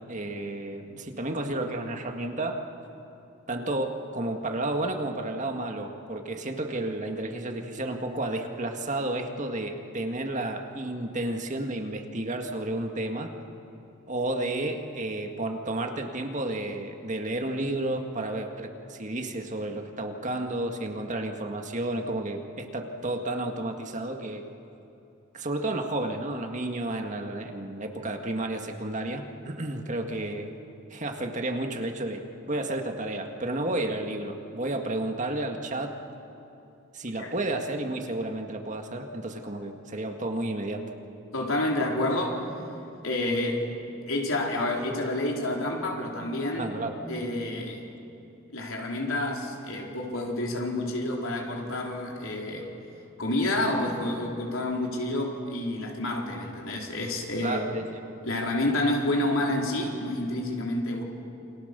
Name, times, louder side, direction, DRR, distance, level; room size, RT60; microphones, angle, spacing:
voice 1, 0.1-2.6 3.5-13.3 14.1-24.4 25.3-30.5 30.9-32.2 32.5-35.9 36.9-40.8 46.6-46.9 57.4-58.0, right 2 dB, 35° right, 4 dB, 1.8 m, -31 dB
voice 2, 41.3-42.4 43.0-43.7 44.1-46.8 47.1-47.8 48.5-52.7 53.2-57.6 58.2-61.0, left 1 dB, 70° left, 0 dB, 4.1 m, -29 dB
29.0 x 26.5 x 6.8 m, 2.8 s
head